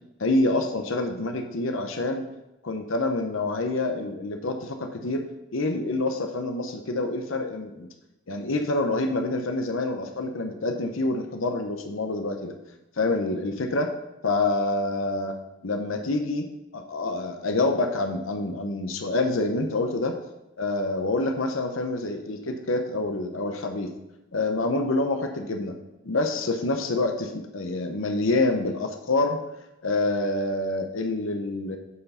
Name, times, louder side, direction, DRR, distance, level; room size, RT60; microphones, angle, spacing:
voice 1, 0.2-2.2 2.6-5.3 5.5-7.9 8.3-12.5 13.0-13.9 14.2-15.3 15.6-16.4 16.7-20.2 20.6-23.9 24.3-25.7 26.0-29.4 29.8-31.8, left 2 dB, 85° left, 5 dB, 0.8 m, -27 dB
8.3 x 4.7 x 5.6 m, 0.95 s
head